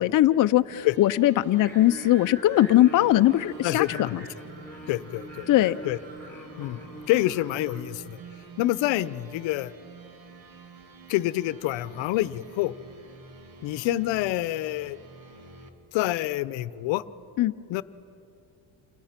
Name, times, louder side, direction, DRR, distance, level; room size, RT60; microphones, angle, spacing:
voice 1, 0.0-4.2 5.5-5.8 17.4-17.5, left 14 dB, 45° left, 9 dB, 0.6 m, -20 dB
sound 1, 0.7-15.7, right 4 dB, 80° right, 2.4 m, -49 dB
Singing, 1.6-7.8, right 1 dB, 5° left, 4.7 m, -43 dB
voice 2, 3.6-4.3 4.9-5.5 5.8-6.0 6.6-6.8 7.1-8.2 8.6-9.7 11.1-12.7 13.6-15.0 15.9-17.0 17.7-17.8, left 16 dB, 80° left, 16 dB, 0.8 m, -27 dB
29.0 x 28.0 x 5.9 m, 2.7 s
cardioid pair, 115°, 44 cm